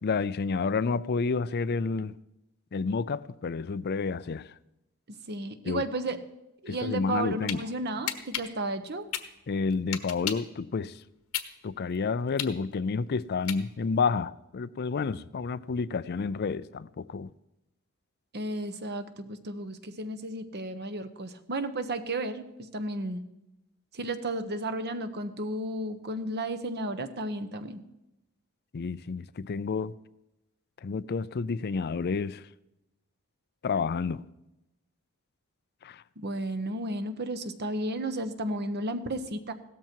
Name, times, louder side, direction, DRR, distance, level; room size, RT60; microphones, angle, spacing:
voice 1, 0.0-2.1 2.7-4.5 5.7-5.8 6.7-7.6 9.5-11.0 11.6-17.3 28.7-29.9 30.8-32.4 33.6-34.2 35.8-36.0, left 4 dB, 50° left, 0.4 m, -30 dB
voice 2, 5.3-6.2 6.6-9.1 18.3-23.2 23.9-27.8 36.2-39.5, right 1 dB, 50° right, 1.2 m, -33 dB
sound 1, 7.0-7.6 8.1-10.5 11.0-14.0, left 10 dB, 80° left, 1.3 m, -35 dB
16.5 x 13.0 x 4.6 m
head